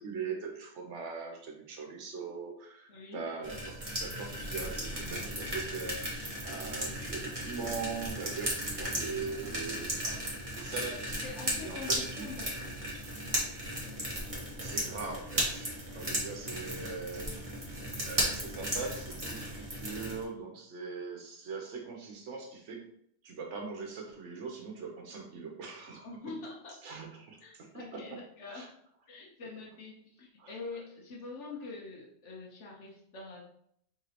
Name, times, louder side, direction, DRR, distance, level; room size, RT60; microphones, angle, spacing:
voice 1, 0.0-11.2 11.6-12.3 14.6-17.6 18.1-22.8 23.2-26.4 26.8-28.2 28.5-28.7 30.4-30.5, right 5 dB, 85° right, 2 dB, 1.2 m, -41 dB
voice 2, 2.9-3.3 11.2-12.9 26.0-26.8 27.4-28.7 29.1-33.4, left 3 dB, 85° left, -1 dB, 1.3 m, -45 dB
sound 1, 3.4-20.2, right 1 dB, 30° right, 1.2 m, -36 dB
5.0 x 3.6 x 2.9 m, 0.70 s
omnidirectional pair, 1.2 m